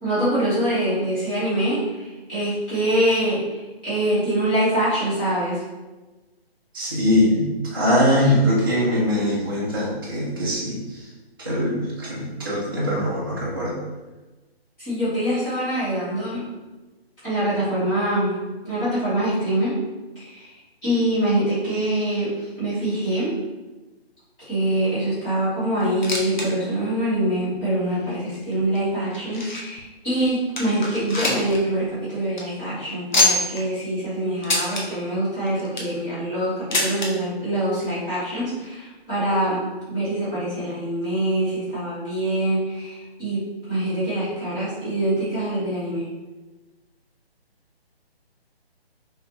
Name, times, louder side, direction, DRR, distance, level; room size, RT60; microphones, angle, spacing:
voice 1, 0.0-5.6 14.8-16.4 17.2-18.4 18.6-19.8 20.1-20.5 20.8-23.3 24.4-39.6 39.9-46.1, right 1 dB, 10° left, -14 dB, 1.0 m, -24 dB
voice 2, 6.7-10.8 11.4-13.8, left 1 dB, 20° right, -8 dB, 0.6 m, -22 dB
sound 1, 25.8-26.5 26.8-26.9 27.5-27.6 28.3-29.8 30.2-30.3 30.6-31.6 31.9-32.0 32.2-32.4 33.1-33.6 34.4-34.8 35.5-36.0 36.7-37.1 38.1-38.2 38.4-38.5 39.3-39.4, left 2 dB, 45° left, 0.7 m, -24 dB
3.9 x 3.1 x 2.8 m, 1.2 s
hypercardioid pair, 170°, 32 cm